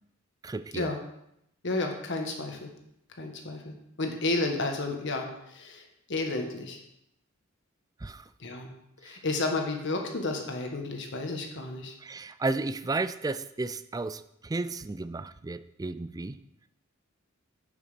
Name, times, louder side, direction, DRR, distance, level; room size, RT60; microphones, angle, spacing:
voice 1, 0.4-0.9 8.0-8.2 12.0-16.4, right 3 dB, 20° right, 13 dB, 0.4 m, -33 dB
voice 2, 1.6-2.7 3.2-6.8 8.4-8.7 9.0-11.9, left 2 dB, 60° left, 3 dB, 1.5 m, -32 dB
8.3 x 7.3 x 5.1 m, 0.80 s
head